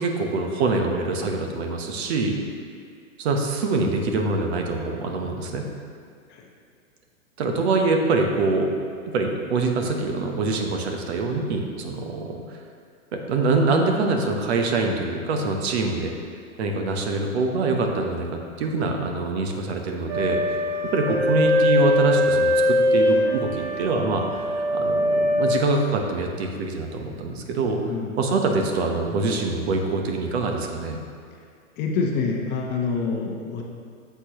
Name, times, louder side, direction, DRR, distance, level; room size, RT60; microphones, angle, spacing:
voice 1, 0.0-2.4 3.2-5.7 7.4-8.7 9.1-12.6 13.1-16.1 16.6-20.6 20.9-27.8 28.2-31.0, right 3 dB, 50° right, 3 dB, 1.1 m, -24 dB
sound 1, 20.1-25.5, left 1 dB, 10° right, 0.4 m, -22 dB
voice 2, 27.8-28.2 31.8-33.6, left 4 dB, 25° left, 0 dB, 0.8 m, -26 dB
9.9 x 7.0 x 3.0 m, 2.2 s
hypercardioid pair, 125°, 41 cm